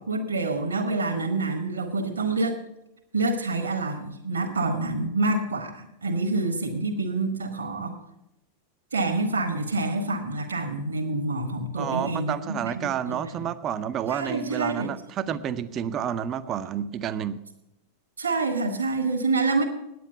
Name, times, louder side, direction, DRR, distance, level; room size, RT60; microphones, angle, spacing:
voice 1, 0.0-2.6 3.1-8.0 8.9-13.2 14.1-14.9 15.3-15.4 18.2-19.6, right 3 dB, 70° right, 4 dB, 1.4 m, -27 dB
voice 2, 11.8-17.4, right 9 dB, 30° right, 12 dB, 0.6 m, -30 dB
9.4 x 9.1 x 8.0 m, 0.89 s
figure-of-eight pair, 90°, 0 cm